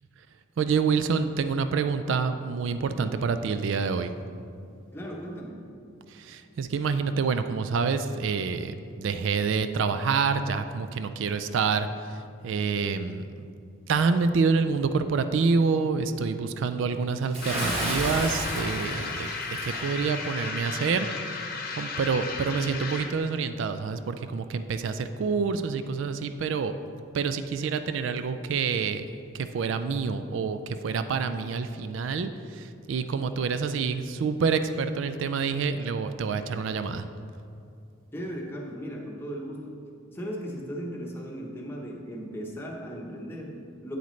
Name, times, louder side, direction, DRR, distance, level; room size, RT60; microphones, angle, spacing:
voice 1, 0.6-4.1 6.1-13.5 13.9-26.7 27.1-29.1 29.3-37.1, right 5 dB, 65° right, 10 dB, 0.3 m, -27 dB
voice 2, 4.9-5.7 38.1-39.8 40.1-44.0, equal, 10° left, -2 dB, 0.8 m, -37 dB
Bathtub (filling or washing) / Splash splatter, 17.3-19.8, right 1 dB, 30° right, 1.6 m, -32 dB
sound 1, 17.4-23.2, left 4 dB, 45° left, 0.9 m, -34 dB
8.4 x 7.9 x 3.2 m, 2.4 s
head